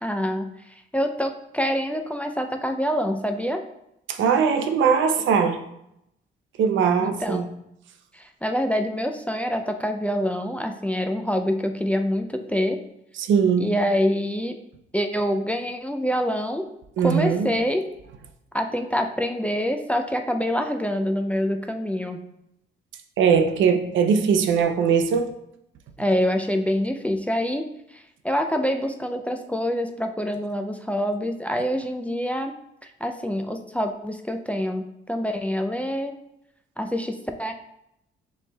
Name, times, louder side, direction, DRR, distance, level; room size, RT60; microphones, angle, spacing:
voice 1, 0.0-3.6 7.0-7.4 8.1-12.8 13.6-14.6 14.9-16.6 17.0-17.8 18.5-22.2 26.0-27.6 27.9-32.5 33.0-36.2 36.8-37.5, equal, 5° left, 5 dB, 0.3 m, -26 dB
voice 2, 4.1-5.6 6.6-7.5 13.2-13.7 17.0-17.5 23.2-25.3, right 6 dB, 75° right, 7 dB, 0.6 m, -20 dB
6.7 x 3.3 x 2.2 m, 0.81 s
cardioid pair, 90°, 20 cm